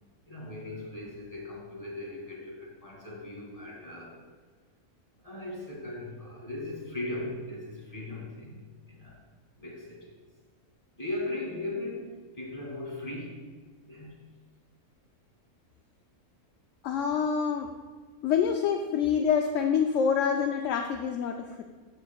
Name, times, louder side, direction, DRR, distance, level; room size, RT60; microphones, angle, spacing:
voice 1, 0.3-4.2 5.2-9.2 9.6-10.1 10.9-13.4 13.8-14.1, left 2 dB, 25° left, -3 dB, 2.3 m, -38 dB
voice 2, 16.8-17.7 18.2-21.6, left 7 dB, 65° left, 4 dB, 0.8 m, -26 dB
12.5 x 7.5 x 2.3 m, 1.4 s
omnidirectional pair, 1.6 m